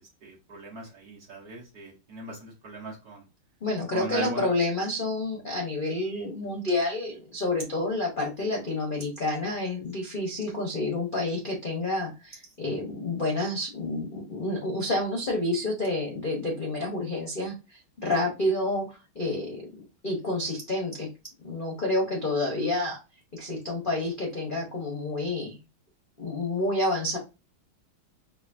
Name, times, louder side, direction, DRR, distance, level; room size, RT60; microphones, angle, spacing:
voice 1, 0.2-3.2 3.9-4.5, right 3 dB, 60° right, -2 dB, 1.1 m, -38 dB
voice 2, 3.6-19.7 20.0-21.1 21.4-23.0 23.3-25.6 26.2-27.2, left 2 dB, 65° left, -1 dB, 0.5 m, -29 dB
5.0 x 2.4 x 2.5 m, 0.28 s
omnidirectional pair, 2.3 m